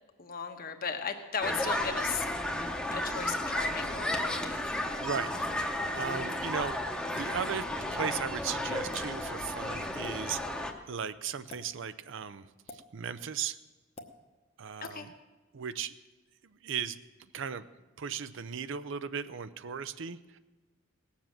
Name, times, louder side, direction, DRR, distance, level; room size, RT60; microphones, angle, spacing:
voice 1, 0.2-2.2 2.9-4.7 14.8-15.1, left 6 dB, 45° left, 6 dB, 1.1 m, -36 dB
sound 1, 1.4-10.7, left 1 dB, 5° left, 0.9 m, -33 dB
voice 2, 5.0-5.3 5.9-7.7 7.9-10.4 10.9-13.6 14.6-15.1 15.5-15.9 16.6-17.0 17.3-17.7 18.0-20.4, right 7 dB, 65° right, 14 dB, 0.5 m, -36 dB
sound 2, 5.3-8.3, left 3 dB, 85° left, 1.7 m, -56 dB
sound 3, 8.9-9.1 10.0-10.2 11.4-11.6 12.7-12.8 14.0-14.1 14.8-15.0, left 1 dB, 30° left, 1.0 m, -46 dB
18.0 x 7.3 x 7.5 m, 1.2 s
head